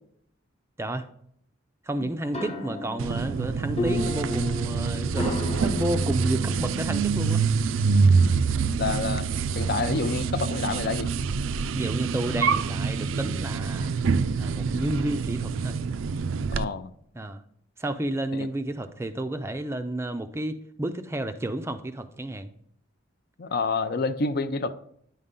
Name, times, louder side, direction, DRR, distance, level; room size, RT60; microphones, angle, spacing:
voice 1, 1.8-5.3 5.6-7.5 11.7-13.9 14.4-15.8 17.2-17.4 17.8-22.5, right 1 dB, 15° right, 9 dB, 0.4 m, -31 dB
sound 1, 2.2-7.5, left 2 dB, 30° left, 0.9 m, -34 dB
sound 2, 3.0-16.6, right 5 dB, 80° right, 0.4 m, -26 dB
voice 2, 8.8-9.3 9.5-11.1 16.3-16.9 18.3-18.5 23.4-24.7, left 4 dB, 50° left, 12 dB, 0.5 m, -28 dB
9.4 x 5.4 x 3.7 m, 0.67 s
head